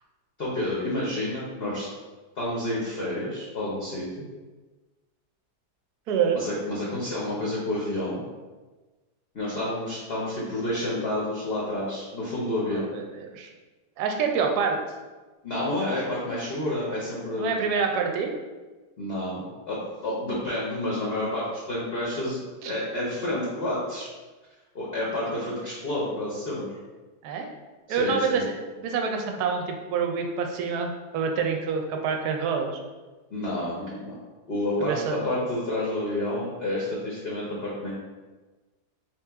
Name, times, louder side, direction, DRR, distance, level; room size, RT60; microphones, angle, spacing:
voice 1, 0.4-1.9 2.3-4.2 6.3-8.2 9.3-12.9 15.4-17.6 19.0-24.1 24.7-26.7 27.9-28.5 33.3-34.1 34.5-37.9, left 1 dB, 50° left, -6 dB, 0.8 m, -29 dB
voice 2, 6.1-6.4 12.7-13.0 13.3-13.5 14.0-14.8 17.4-18.3 22.6-22.7 27.2-27.5 27.9-32.7 34.8-35.2, right 6 dB, 75° right, 3 dB, 1.1 m, -27 dB
3.4 x 3.0 x 3.4 m, 1.3 s
omnidirectional pair, 1.8 m